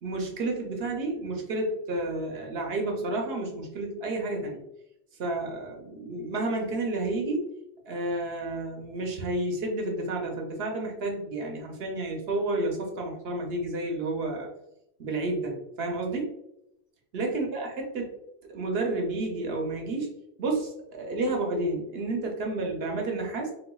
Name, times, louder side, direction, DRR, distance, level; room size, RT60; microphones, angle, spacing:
voice 1, 0.0-4.6 5.2-7.5 7.9-14.5 15.0-16.3 17.1-18.1 18.4-20.1 20.4-23.5, right 2 dB, 70° right, 1 dB, 0.9 m, -30 dB
4.0 x 2.5 x 2.2 m, 0.82 s
omnidirectional pair, 1.1 m